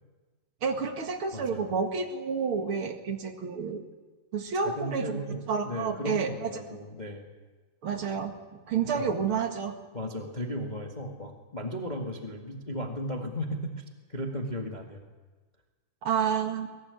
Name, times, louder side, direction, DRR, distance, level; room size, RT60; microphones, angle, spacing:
voice 1, 0.6-3.8 4.3-6.5 7.8-8.3 8.7-9.7 16.0-16.7, right 6 dB, 45° right, 6 dB, 2.3 m, -30 dB
voice 2, 1.3-1.7 4.5-7.3 8.9-9.1 9.9-13.8 14.1-15.0, equal, 20° left, 2 dB, 1.4 m, -35 dB
23.0 x 18.5 x 9.8 m, 1.3 s
omnidirectional pair, 3.8 m